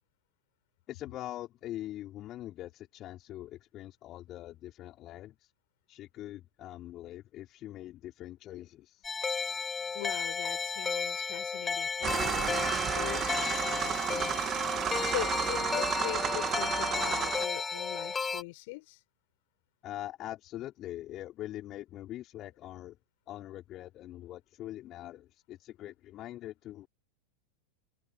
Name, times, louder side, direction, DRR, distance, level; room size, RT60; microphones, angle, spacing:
voice 1, 0.9-5.5 5.9-9.1 19.8-23.0 23.3-26.9, left 14 dB, 35° left, 3.4 m, -43 dB
sound 1, 9.0-18.4, left 5 dB, 15° left, 6.1 m, -33 dB
voice 2, 9.9-14.3 15.0-19.0, left 24 dB, 50° left, 6.3 m, -41 dB
sound 2, 12.0-17.5, right 10 dB, 25° right, 2.5 m, -32 dB
sound 3, 13.0-15.7, equal, 90° right, 6.6 m, -48 dB
figure-of-eight pair, 90°, 0 cm